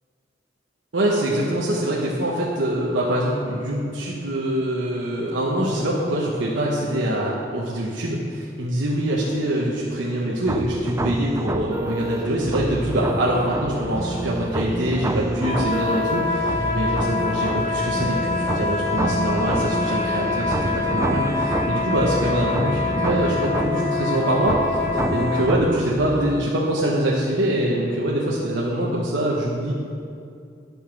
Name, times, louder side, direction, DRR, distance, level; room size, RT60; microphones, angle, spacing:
voice 1, 0.9-29.7, right 1 dB, 90° right, -4 dB, 1.1 m, -24 dB
sound 1, 10.5-26.5, right 2 dB, 15° right, 0.3 m, -27 dB
sound 2, 15.3-25.5, left 4 dB, 30° left, 1.4 m, -26 dB
10.5 x 5.5 x 6.0 m, 2.4 s
head